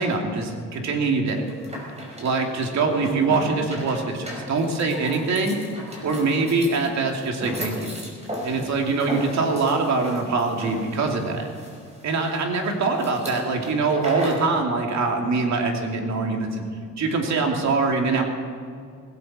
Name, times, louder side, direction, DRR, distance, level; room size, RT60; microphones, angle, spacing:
voice 1, 0.0-1.4 2.2-5.6 6.0-7.9 8.4-11.5 12.0-16.6 17.0-18.2, right 3 dB, 65° right, 2 dB, 2.7 m, -23 dB
sound 1, 1.3-14.5, equal, 20° right, 4.9 m, -36 dB
18.0 x 16.5 x 4.3 m, 2.3 s
cardioid pair, 90°, 30 cm